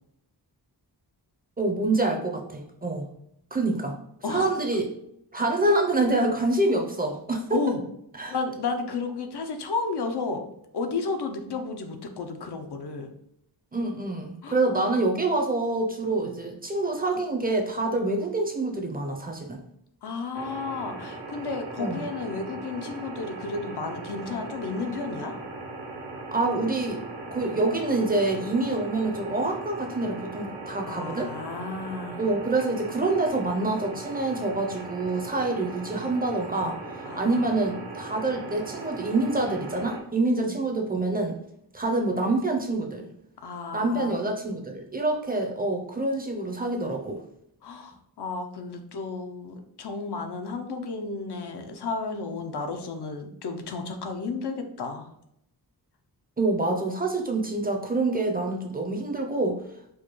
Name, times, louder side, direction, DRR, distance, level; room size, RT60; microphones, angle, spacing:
voice 1, 1.6-3.1 3.5-4.0 4.3-4.9 5.3-7.6 8.2-8.3 13.7-19.6 21.8-22.0 26.3-27.0 27.3-31.3 32.2-36.8 37.2-41.4 41.7-43.1 43.7-47.2 56.4-59.6, right 2 dB, 25° right, 2 dB, 0.5 m, -26 dB
voice 2, 8.3-10.4 10.7-13.1 14.4-14.6 16.2-16.3 20.0-25.3 30.8-32.3 37.0-37.5 40.3-40.5 43.4-44.3 47.6-55.1, left 4 dB, 75° left, 5 dB, 0.6 m, -32 dB
sound 1, 20.3-40.0, right 2 dB, 85° right, 0.8 m, -39 dB
4.6 x 2.2 x 3.0 m, 0.75 s
wide cardioid pair, 120°, 40 cm